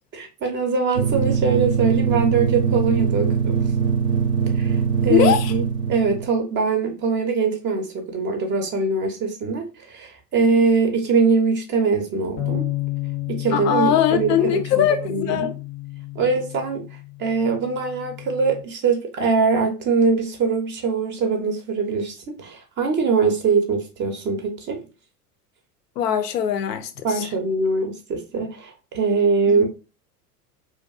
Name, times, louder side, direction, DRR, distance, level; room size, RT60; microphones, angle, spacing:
voice 1, 0.1-3.6 4.5-5.6 5.9-12.7 13.3-15.5 16.1-24.8 27.0-29.7, right 4 dB, 25° right, 0.4 m, -22 dB
sound 1, 1.0-6.3, right 6 dB, 75° right, 0.5 m, -22 dB
voice 2, 5.1-5.5 13.5-15.5 26.0-27.3 29.5-29.7, left 9 dB, 80° left, 0.5 m, -21 dB
sound 2, 12.4-18.6, left 17 dB, 30° left, 0.5 m, -31 dB
2.5 x 2.2 x 2.3 m
hypercardioid pair, 85°, 47 cm